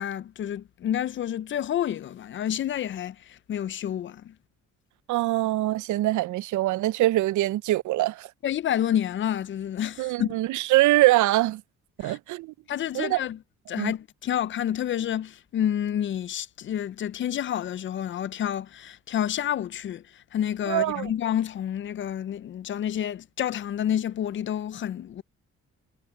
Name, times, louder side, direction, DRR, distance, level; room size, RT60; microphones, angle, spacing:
voice 1, 0.0-4.3 8.4-10.3 12.0-12.2 12.7-13.4 13.7-25.2, left 10 dB, 40° left, 0.4 m, -29 dB
voice 2, 5.1-8.3 10.0-11.6 12.0-12.5 12.9-13.2 13.8-13.9 20.7-21.1, right 17 dB, 75° right, 0.5 m, -23 dB
cardioid pair, 165°, 30 cm